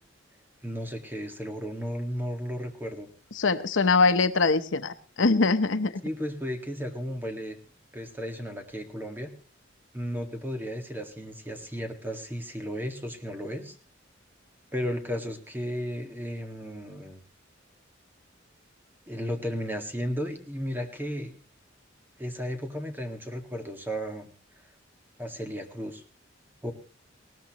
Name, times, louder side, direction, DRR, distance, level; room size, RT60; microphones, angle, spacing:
voice 1, 0.6-3.1 6.0-7.6 7.9-9.3 9.9-13.8 14.7-17.2 19.1-21.3 22.2-24.3 25.2-26.0 26.6-26.7, equal, 10° right, 5 dB, 1.8 m, -34 dB
voice 2, 3.4-5.9, left 3 dB, 80° left, 10 dB, 0.9 m, -23 dB
20.0 x 18.0 x 3.0 m, 0.35 s
head